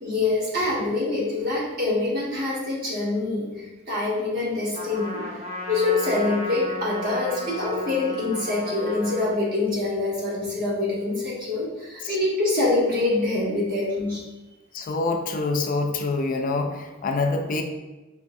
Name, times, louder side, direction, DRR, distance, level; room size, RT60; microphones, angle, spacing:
voice 1, 0.0-5.3 5.7-14.2, left 2 dB, 50° right, -6 dB, 1.4 m, -25 dB
Trumpet, 4.7-9.4, left 1 dB, 35° right, 0.6 m, -34 dB
voice 2, 14.7-17.6, left 3 dB, 45° left, 5 dB, 0.4 m, -26 dB
5.2 x 2.6 x 2.6 m, 1.1 s
head